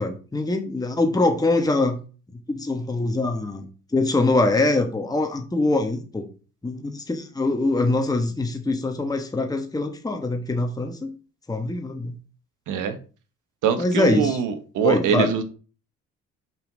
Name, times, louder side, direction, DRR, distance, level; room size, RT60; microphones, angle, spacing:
voice 1, 0.0-2.0 2.5-3.7 3.9-6.3 6.6-11.1 11.5-12.1 13.8-14.4 14.8-15.3, left 2 dB, 10° left, 3 dB, 1.2 m, -23 dB
voice 2, 13.6-15.4, right 7 dB, 85° right, 9 dB, 1.2 m, -23 dB
5.6 x 5.4 x 3.9 m, 0.36 s
cardioid pair, 90°, 30 cm